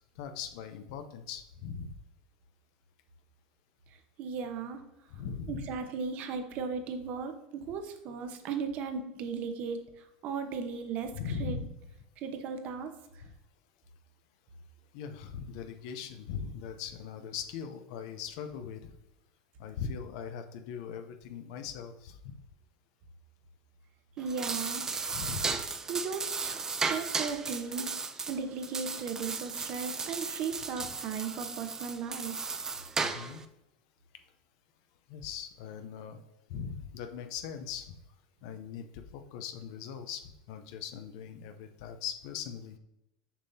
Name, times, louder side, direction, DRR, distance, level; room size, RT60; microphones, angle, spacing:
voice 1, 0.2-1.9 5.1-5.6 11.1-11.7 14.9-18.9 19.6-22.3 25.1-25.5 33.0-33.4 35.1-36.2 36.5-38.0 38.4-42.8, left 7 dB, 70° left, 8 dB, 0.7 m, -40 dB
voice 2, 4.2-4.8 5.5-9.8 10.2-11.6 12.2-12.9 24.2-24.8 25.9-27.9 28.3-32.5, right 5 dB, 50° right, 7 dB, 1.0 m, -36 dB
sound 1, 24.2-33.5, right 4 dB, 15° right, 0.5 m, -35 dB
7.0 x 5.5 x 2.8 m, 0.89 s
supercardioid pair, 135°, 3 cm